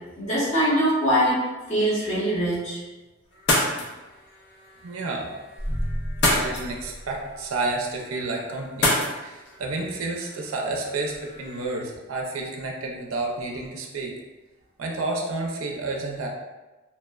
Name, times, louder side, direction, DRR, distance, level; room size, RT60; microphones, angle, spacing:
voice 1, 0.2-1.4 1.7-2.8, equal, 35° left, -12 dB, 0.9 m, -22 dB
sound 1, 3.3-11.7, left 1 dB, 55° left, 0.5 m, -30 dB
voice 2, 4.8-5.3 6.2-14.1 14.8-16.3, right 2 dB, 80° right, 0 dB, 0.4 m, -30 dB
sound 2, 5.6-7.8, equal, 5° right, 0.5 m, -32 dB
2.9 x 2.0 x 2.2 m, 1.2 s
head